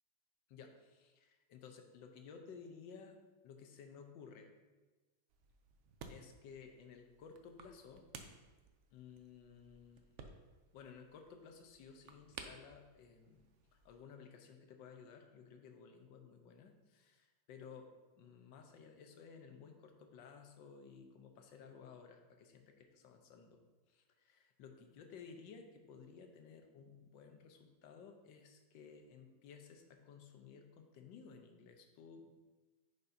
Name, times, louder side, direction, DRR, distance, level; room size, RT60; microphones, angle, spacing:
voice 1, 0.5-3.2 3.4-4.5 6.1-8.1 8.9-10.1 10.7-13.4 13.7-17.9 18.2-23.6 23.9-32.3, left 6 dB, 90° left, 5 dB, 1.4 m, -56 dB
sound 1, 5.3-14.0, right 5 dB, 85° right, 0.6 m, -57 dB
9.6 x 5.4 x 2.7 m, 1.2 s
omnidirectional pair, 1.9 m